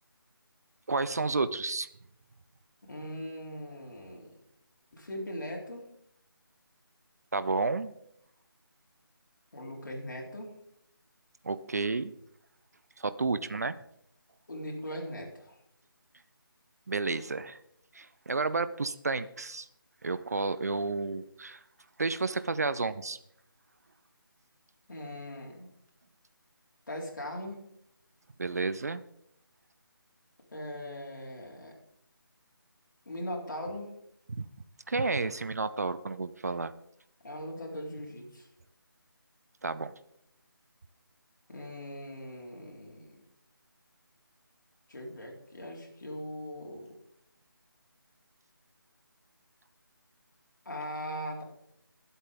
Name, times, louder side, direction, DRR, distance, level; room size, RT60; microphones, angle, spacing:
voice 1, 0.9-1.9 7.3-7.9 11.4-12.1 13.0-13.8 16.9-17.6 17.9-19.7 20.0-21.6 22.0-23.2 28.4-29.0 34.4-34.5 34.9-36.7 39.6-39.9, right 3 dB, 45° right, 14 dB, 0.6 m, -31 dB
voice 2, 2.9-4.3 4.9-5.8 9.5-10.5 14.5-15.6 24.9-25.7 26.9-27.6 30.5-31.7 33.1-34.0 37.2-38.5 41.5-43.2 44.9-46.9 50.7-51.4, equal, 55° left, -1 dB, 4.2 m, -40 dB
21.5 x 8.2 x 3.8 m, 0.74 s
figure-of-eight pair, 155°, 12 cm